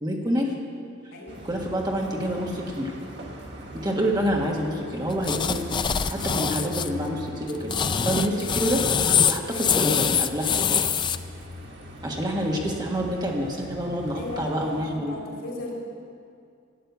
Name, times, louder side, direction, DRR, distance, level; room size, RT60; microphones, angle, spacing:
voice 1, 0.0-0.5 1.4-2.9 3.7-5.8 6.1-7.7 8.0-8.8 9.3-10.5 12.0-15.2, equal, 20° right, -1 dB, 1.5 m, -27 dB
sound 1, 1.3-14.9, equal, 60° right, 1.7 m, -40 dB
sound 2, 5.2-6.9 7.5-11.2, left 7 dB, 25° left, 0.3 m, -24 dB
voice 2, 14.1-15.7, left 2 dB, 90° left, -2 dB, 3.5 m, -36 dB
12.0 x 8.9 x 8.0 m, 2.4 s
head